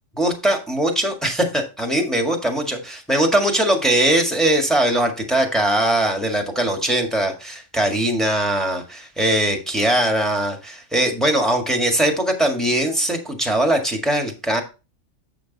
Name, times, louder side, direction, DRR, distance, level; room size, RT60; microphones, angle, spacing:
voice 1, 0.2-14.6, right 1 dB, ahead, 2 dB, 1.8 m, -20 dB
8.6 x 5.9 x 4.0 m, 0.30 s
omnidirectional pair, 1.2 m